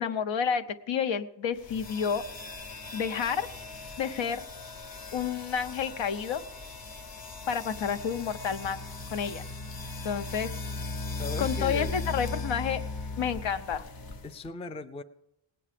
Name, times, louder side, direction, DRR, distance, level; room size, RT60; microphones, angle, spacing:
voice 1, 0.0-2.2 2.9-3.5 4.0-4.4 5.1-6.4 7.5-8.8 9.1-9.4 10.0-10.5 11.4-12.8 13.2-13.9, left 7 dB, 75° left, 10 dB, 0.8 m, -30 dB
sound 1, 1.6-14.5, left 3 dB, 50° left, 1.0 m, -38 dB
voice 2, 11.2-12.0 14.2-15.0, left 3 dB, 15° left, 10 dB, 0.4 m, -38 dB
18.5 x 8.6 x 5.1 m, 0.84 s
wide cardioid pair, 140°, 46 cm